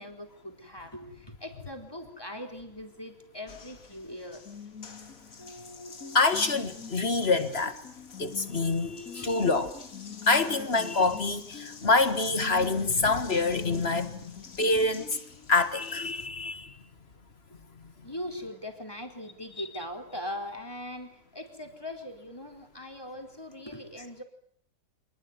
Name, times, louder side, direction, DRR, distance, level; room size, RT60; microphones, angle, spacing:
voice 1, 0.0-4.5 8.8-9.0 14.2-14.3 18.0-24.2, left 1 dB, 15° left, 4.0 m, -40 dB
Water tap faucet, 3.5-16.3, left 6 dB, 55° left, 2.4 m, -45 dB
voice 2, 6.1-7.8 8.2-9.8 10.3-15.0 15.5-16.8 17.8-17.9, left 3 dB, 40° left, 1.8 m, -26 dB
26.0 x 20.5 x 9.6 m
omnidirectional pair, 1.8 m